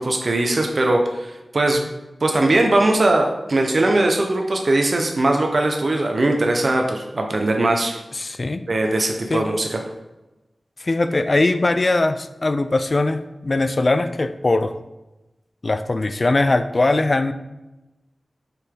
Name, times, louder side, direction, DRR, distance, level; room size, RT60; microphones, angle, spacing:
voice 1, 0.0-1.8 2.2-8.0 8.7-9.8, right 2 dB, 55° right, 2 dB, 1.1 m, -20 dB
voice 2, 8.1-8.6 9.3-9.4 10.8-14.8 15.6-17.3, left 2 dB, 45° left, 11 dB, 0.5 m, -20 dB
8.0 x 6.9 x 3.9 m, 1.0 s
wide cardioid pair, 75°, 0 cm